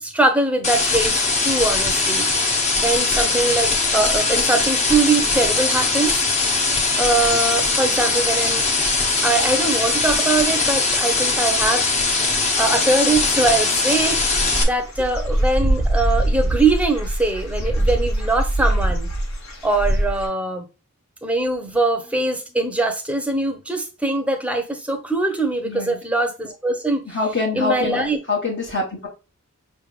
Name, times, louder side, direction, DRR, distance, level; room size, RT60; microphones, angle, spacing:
voice 1, 0.0-2.4 2.8-6.2 7.0-8.6 9.2-11.9 12.6-14.2 14.6-19.1 19.6-20.7 21.2-27.0 27.5-28.2, right 2 dB, 5° right, 0.8 m, -22 dB
sound 1, 0.6-14.6, left 3 dB, 30° left, 1.0 m, -20 dB
Dog / Bird, 14.0-20.3, right 1 dB, 70° left, 1.6 m, -23 dB
voice 2, 25.6-26.0 27.1-29.1, left 3 dB, 55° left, 1.5 m, -25 dB
5.4 x 3.5 x 2.3 m
head